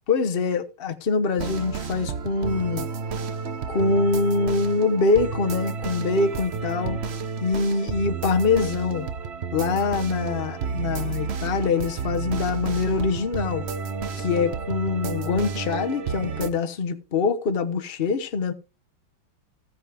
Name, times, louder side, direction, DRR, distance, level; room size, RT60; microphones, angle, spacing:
voice 1, 0.1-2.9 3.7-7.0 7.4-9.1 9.5-13.6 14.2-18.5, left 4 dB, 35° left, 1.0 m, -24 dB
sound 1, 1.4-16.5, right 5 dB, 70° right, 0.6 m, -31 dB
15.0 x 8.7 x 3.6 m
omnidirectional pair, 2.4 m